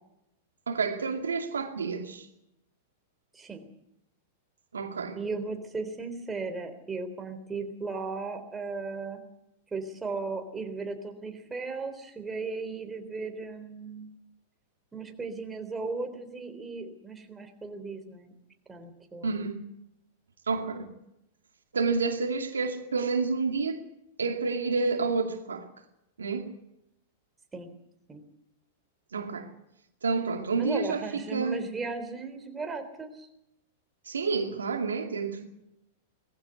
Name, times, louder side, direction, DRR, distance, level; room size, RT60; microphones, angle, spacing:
voice 1, 0.7-2.3 4.7-5.2 19.2-19.6 20.5-20.9 21.7-23.8 24.2-25.7 26.2-26.5 29.1-29.5 30.0-31.6 34.1-35.5, right 4 dB, 85° right, 2.3 m, -29 dB
voice 2, 3.3-3.7 5.1-9.2 9.7-14.1 14.9-18.3 18.7-19.5 27.5-27.7 28.1-28.2 30.6-33.3, right 4 dB, 15° right, 3.7 m, -36 dB
20.0 x 15.5 x 9.5 m
hypercardioid pair, 110°, 0 cm